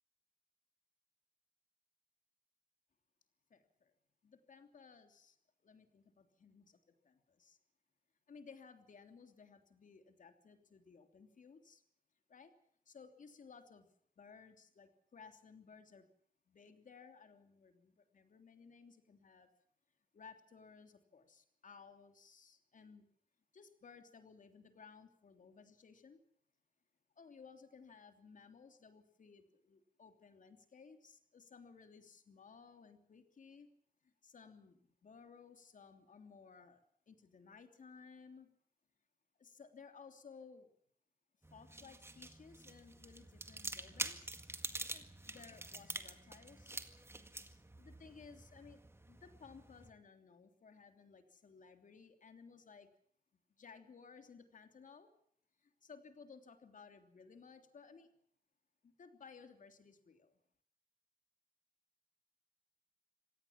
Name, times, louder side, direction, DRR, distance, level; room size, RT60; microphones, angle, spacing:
voice 1, 3.5-3.9 4.2-5.4 5.6-7.6 8.3-11.8 12.3-12.5 12.8-13.9 14.2-16.1 16.5-19.5 20.1-23.0 23.5-26.2 27.2-33.7 34.0-38.5 39.4-40.7 41.5-44.4 44.6-46.8 47.8-48.8 49.1-52.9 53.6-55.1 55.6-58.1 58.8-60.4, left 5 dB, 65° left, 7 dB, 3.1 m, -59 dB
sound 1, 41.4-49.9, right 2 dB, 15° right, 1.9 m, -47 dB
26.5 x 18.0 x 7.3 m, 0.63 s
wide cardioid pair, 135°, 15 cm